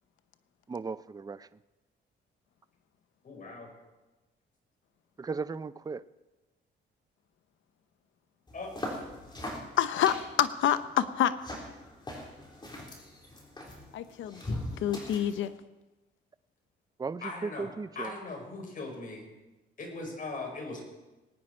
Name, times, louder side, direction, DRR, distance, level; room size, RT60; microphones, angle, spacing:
voice 1, 0.7-1.5 5.2-6.0 17.0-18.2, right 4 dB, 20° right, 15 dB, 0.5 m, -36 dB
voice 2, 3.2-3.7 8.5-8.7 17.2-17.7 17.9-19.3 19.8-20.9, left 3 dB, 45° left, 1 dB, 4.8 m, -39 dB
sound 1, 8.5-15.5, left 1 dB, 20° left, 3.8 m, -41 dB
voice 3, 9.8-11.3 13.9-14.4 14.8-15.6, left 10 dB, 75° left, 12 dB, 0.8 m, -27 dB
20.5 x 9.5 x 4.4 m, 1.1 s
cardioid pair, 90°, 20 cm